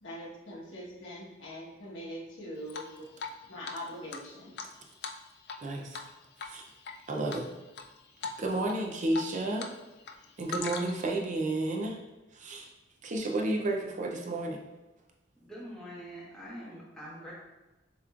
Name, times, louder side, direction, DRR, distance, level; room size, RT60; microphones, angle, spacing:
voice 1, 0.0-2.8 3.5-4.5, equal, 75° left, -5 dB, 1.2 m, -42 dB
Drip, 2.7-3.4 3.6-3.7 4.1-5.6 5.9-6.1 6.4-6.9 7.3-7.8 8.2-8.4 8.7-9.7 10.0-11.1, left 5 dB, 60° left, 0.4 m, -39 dB
voice 2, 5.6-6.0 6.4-6.6 7.1-7.5 8.2-9.7 10.4-12.0 12.3-12.7 13.0-14.6, right 2 dB, 40° right, 1 dB, 0.5 m, -32 dB
voice 3, 15.4-17.3, equal, 5° left, -7 dB, 1.3 m, -44 dB
7.1 x 3.0 x 2.4 m, 1.0 s
head